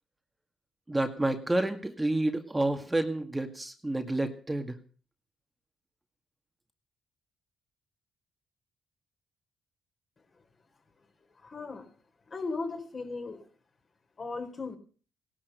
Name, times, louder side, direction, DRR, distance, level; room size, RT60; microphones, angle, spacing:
voice 1, 0.9-4.8, right 1 dB, 10° right, 6 dB, 2.0 m, -29 dB
voice 2, 11.4-11.9 12.3-13.4 14.2-14.8, left 3 dB, 40° left, 5 dB, 4.4 m, -36 dB
17.5 x 11.0 x 6.8 m, 0.41 s
cardioid pair, 90°, 0 cm